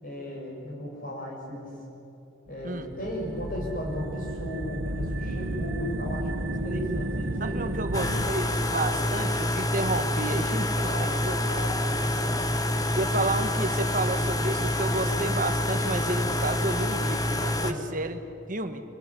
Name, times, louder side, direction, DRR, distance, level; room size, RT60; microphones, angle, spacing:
voice 1, 0.0-1.8 2.5-7.6 8.9-9.2 10.8-12.4 17.5-17.9, left 1 dB, 45° left, -1 dB, 6.9 m, -36 dB
sound 1, 2.5-8.3, right 1 dB, 60° right, 1.2 m, -32 dB
voice 2, 7.4-11.4 13.0-18.2 18.5-18.8, right 2 dB, 40° right, 8 dB, 1.5 m, -31 dB
sound 2, 7.9-17.7, left 1 dB, 15° left, 1.0 m, -27 dB
26.0 x 18.0 x 10.0 m, 3.0 s
head